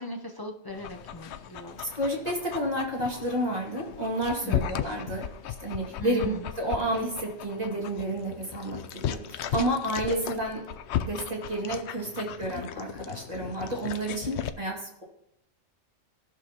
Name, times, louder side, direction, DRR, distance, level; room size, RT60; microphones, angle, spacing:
voice 1, 0.0-1.8 4.4-4.8 6.0-6.5, left 1 dB, 30° left, 2 dB, 0.5 m, -39 dB
Dog, 0.7-14.5, left 10 dB, 65° left, 0.8 m, -36 dB
voice 2, 1.9-5.3 5.6-10.6 11.0-15.0, right 1 dB, 30° right, -3 dB, 2.3 m, -30 dB
17.5 x 6.3 x 2.9 m, 0.82 s
omnidirectional pair, 1.3 m